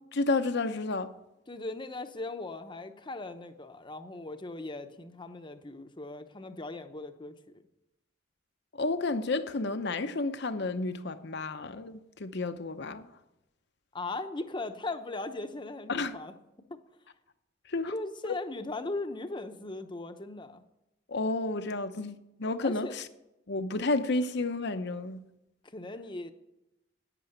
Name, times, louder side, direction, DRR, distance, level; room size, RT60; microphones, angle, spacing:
voice 1, 0.1-1.1 8.7-13.1 15.9-16.2 17.7-18.0 18.3-18.4 21.1-23.0 23.5-25.2, left 3 dB, 60° left, 0.8 m, -31 dB
voice 2, 1.5-7.6 13.9-16.3 16.7-16.8 17.9-20.6 22.6-23.0 25.6-26.3, left 2 dB, 25° left, 0.8 m, -38 dB
11.0 x 9.2 x 7.9 m
head